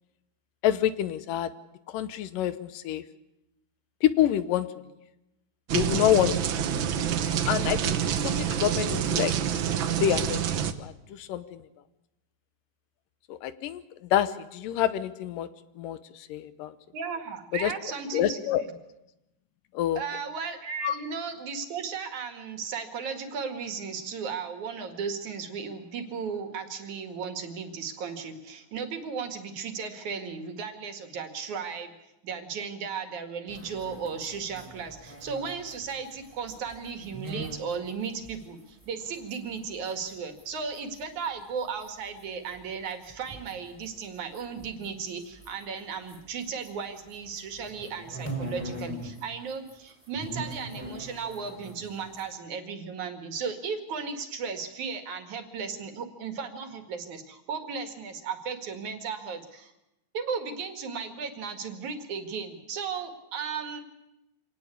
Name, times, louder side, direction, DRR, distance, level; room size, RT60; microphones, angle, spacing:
voice 1, 0.6-1.5 1.9-3.0 4.0-4.7 5.7-6.3 7.5-9.3 10.0-10.4 10.8-11.6 13.3-13.8 14.1-15.5 15.8-16.7 17.6-17.7 18.1-18.6 19.7-20.0 20.8-20.9, left 11 dB, 85° left, 13 dB, 2.7 m, -27 dB
sound 1, 5.7-10.7, right 9 dB, 80° right, 1.1 m, -27 dB
voice 2, 16.9-18.4 20.0-31.9 32.2-59.7 60.1-63.8, right 5 dB, 65° right, 7 dB, 3.4 m, -35 dB
sound 2, 33.5-40.5 40.7-46.7 47.0-49.2 49.5-52.3, right 1 dB, 5° right, 3.5 m, -42 dB
25.5 x 18.0 x 8.5 m, 0.91 s
omnidirectional pair, 3.8 m